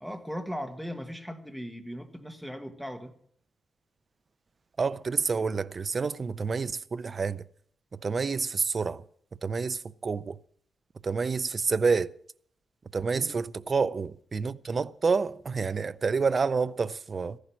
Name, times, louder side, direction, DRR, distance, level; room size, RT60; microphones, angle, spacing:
voice 1, 0.0-3.1 13.1-13.4, equal, ahead, 1.5 m, -38 dB
voice 2, 4.8-7.5 7.9-9.0 9.4-10.4 11.0-12.1 12.9-17.4, right 4 dB, 35° right, 0.5 m, -28 dB
14.5 x 11.5 x 6.1 m
wide cardioid pair, 145°, 0 cm